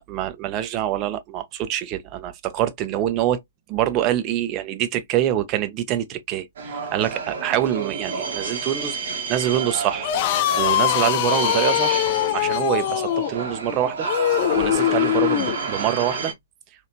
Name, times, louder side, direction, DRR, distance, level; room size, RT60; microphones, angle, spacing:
voice 1, 0.0-3.4 3.7-12.1 12.3-14.1 14.5-16.3, right 12 dB, 25° right, 0.5 m, -25 dB
sound 1, 6.6-16.3, right 4 dB, 55° right, 0.9 m, -30 dB
sound 2, 9.9-15.6, left 13 dB, 35° left, 0.4 m, -22 dB
3.0 x 2.4 x 2.3 m
figure-of-eight pair, 125°, 0 cm